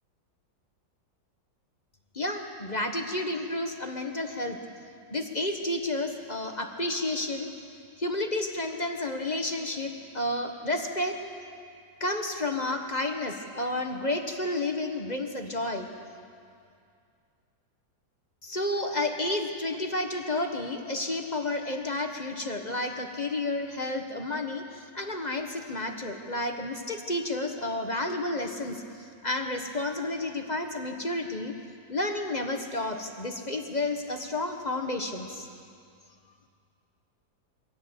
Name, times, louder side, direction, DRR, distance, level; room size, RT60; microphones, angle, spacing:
voice 1, 2.1-4.6 5.1-7.5 8.0-11.2 12.0-15.9 18.4-28.8 29.2-31.5 31.9-35.5, left 2 dB, 25° left, 4 dB, 1.2 m, -31 dB
23.5 x 17.0 x 8.1 m, 2.3 s
omnidirectional pair, 2.0 m